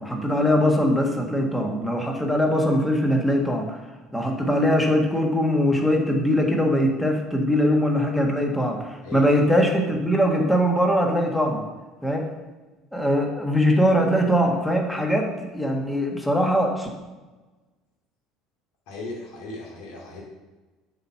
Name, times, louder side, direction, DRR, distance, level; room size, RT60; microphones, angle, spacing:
voice 1, 0.0-3.8 4.1-11.7 12.0-12.3 12.9-16.9, equal, 5° left, 1 dB, 1.6 m, -21 dB
voice 2, 18.9-20.2, left 2 dB, 65° left, -3 dB, 2.3 m, -36 dB
7.9 x 4.2 x 5.8 m, 1.2 s
figure-of-eight pair, 65°, 0 cm